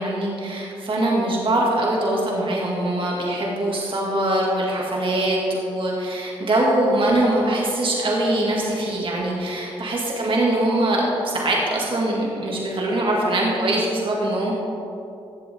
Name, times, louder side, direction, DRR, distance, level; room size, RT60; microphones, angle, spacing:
voice 1, 0.0-14.5, right 1 dB, 50° right, -3 dB, 2.6 m, -22 dB
15.0 x 7.7 x 3.8 m, 2.7 s
supercardioid pair, 45°, 11 cm